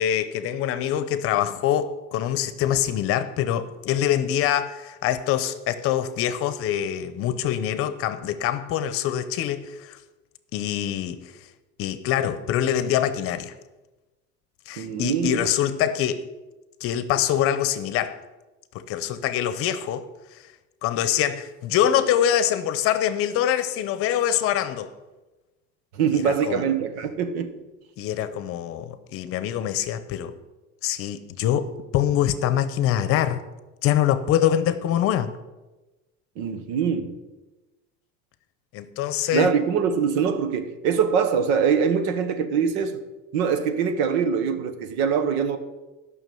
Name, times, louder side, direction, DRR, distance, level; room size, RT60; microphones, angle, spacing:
voice 1, 0.0-10.0 10.5-11.2 11.8-13.5 14.7-16.2 16.8-18.2 18.7-20.0 20.8-24.9 26.2-26.6 28.0-30.3 30.8-33.4 33.8-35.3 38.7-39.5, left 10 dB, 45° left, 0.8 m, -24 dB
voice 2, 14.8-15.5 25.9-27.5 36.4-37.1 39.3-43.0 43.3-45.6, right 7 dB, 85° right, 1.4 m, -23 dB
12.5 x 6.2 x 7.7 m
cardioid pair, 165°, 32 cm